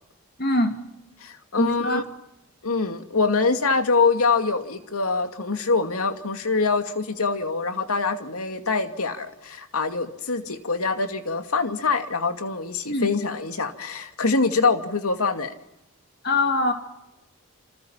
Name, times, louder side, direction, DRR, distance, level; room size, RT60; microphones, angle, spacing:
voice 1, 0.4-0.8 1.6-2.0 12.9-13.1 16.2-16.7, left 2 dB, 45° left, 5 dB, 2.7 m, -22 dB
voice 2, 1.2-2.0 2.6-15.5, left 4 dB, 85° left, 6 dB, 2.6 m, -24 dB
28.5 x 27.0 x 5.9 m, 0.88 s
head